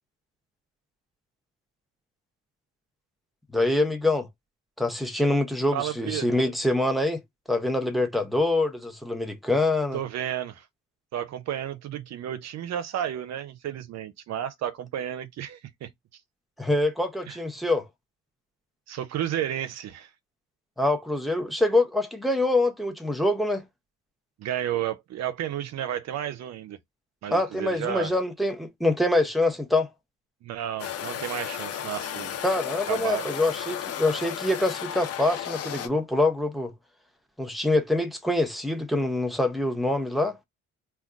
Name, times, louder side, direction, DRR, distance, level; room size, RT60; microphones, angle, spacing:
voice 1, 3.5-4.3 4.8-7.2 7.5-10.0 16.6-17.9 20.8-23.6 27.3-29.9 32.4-36.7 37.4-40.4, left 2 dB, ahead, 0.6 m, -25 dB
voice 2, 5.7-6.4 9.9-10.7 11.1-15.9 17.3-17.4 18.9-20.1 24.4-26.8 27.2-28.1 30.4-32.4 32.9-33.3, right 10 dB, 60° right, 0.5 m, -32 dB
sound 1, 30.8-35.9, left 10 dB, 55° left, 0.5 m, -34 dB
2.2 x 2.2 x 3.7 m
cardioid pair, 90°, 30 cm